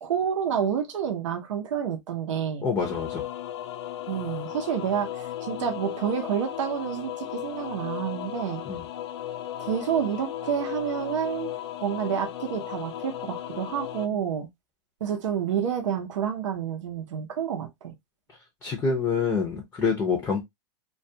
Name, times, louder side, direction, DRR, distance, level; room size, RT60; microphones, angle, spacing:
voice 1, 0.0-2.7 4.1-8.6 9.6-11.5 11.8-14.5 15.0-18.0, right 8 dB, 80° right, 0.7 m, -29 dB
voice 2, 2.6-3.2 8.7-8.8 18.6-20.4, left 5 dB, 15° left, 0.6 m, -26 dB
sound 1, 2.8-14.1, left 11 dB, 60° left, 0.4 m, -36 dB
2.3 x 2.2 x 2.6 m
hypercardioid pair, 145°, 16 cm